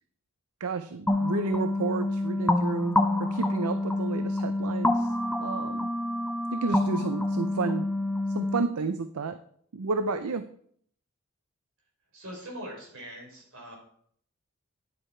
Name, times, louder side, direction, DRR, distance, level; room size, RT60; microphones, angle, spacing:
voice 1, 0.6-5.1 5.4-5.9 6.5-7.9 8.3-9.4 9.7-10.4, right 4 dB, 85° right, 10 dB, 0.5 m, -31 dB
sound 1, 1.1-8.6, left 1 dB, 5° left, 0.5 m, -27 dB
voice 2, 12.1-13.8, equal, 70° right, -1 dB, 4.5 m, -42 dB
10.0 x 7.9 x 4.4 m, 0.62 s
head